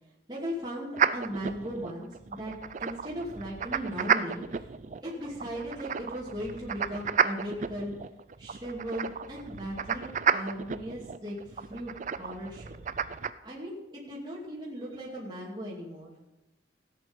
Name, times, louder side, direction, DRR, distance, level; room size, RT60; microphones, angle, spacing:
voice 1, 0.3-4.7 5.0-7.9 8.4-12.8 13.4-16.1, equal, 25° right, -5 dB, 2.5 m, -38 dB
sound 1, 1.0-13.3, right 7 dB, 40° right, 0.4 m, -32 dB
16.0 x 8.5 x 5.2 m, 1.0 s
head